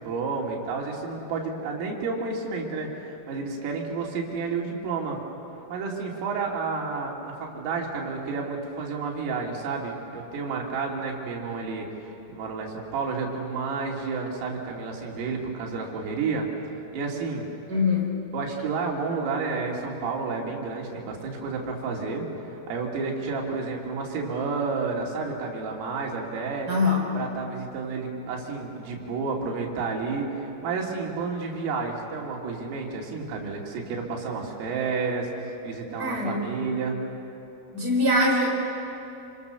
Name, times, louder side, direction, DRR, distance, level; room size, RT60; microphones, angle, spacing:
voice 1, 0.0-5.2 5.7-16.5 16.9-17.5 18.3-26.7 27.1-37.0, right 4 dB, 75° right, -1 dB, 5.3 m, -31 dB
voice 2, 17.7-18.1 26.7-27.0 36.0-36.5 37.7-38.5, left 2 dB, 20° right, -1 dB, 4.0 m, -23 dB
27.0 x 26.0 x 6.9 m, 2.9 s
omnidirectional pair, 6.0 m